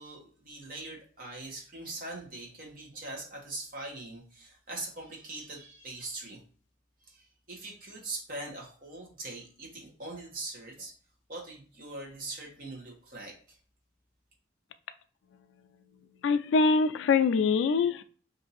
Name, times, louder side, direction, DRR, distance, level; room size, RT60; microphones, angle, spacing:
voice 1, 0.0-6.4 7.0-10.9 11.3-13.6, right 2 dB, 50° right, -2 dB, 1.0 m, -42 dB
voice 2, 16.2-18.0, left 4 dB, 85° left, 10 dB, 0.3 m, -24 dB
2.7 x 2.5 x 4.1 m, 0.42 s
head